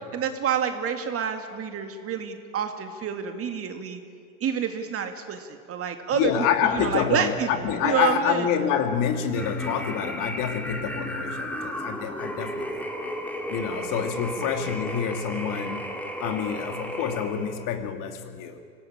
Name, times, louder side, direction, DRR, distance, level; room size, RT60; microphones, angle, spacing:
voice 1, 0.1-4.0 4.4-6.3 6.7-7.5 7.8-8.4 13.7-13.9, right 8 dB, 35° right, 6 dB, 2.1 m, -28 dB
voice 2, 6.1-12.8 13.5-15.9 16.2-18.6, left 8 dB, 50° left, 6 dB, 2.8 m, -27 dB
sound 1, 9.3-17.7, equal, 5° left, 2.7 m, -34 dB
25.5 x 18.0 x 9.0 m, 2.3 s
hypercardioid pair, 90°, 40 cm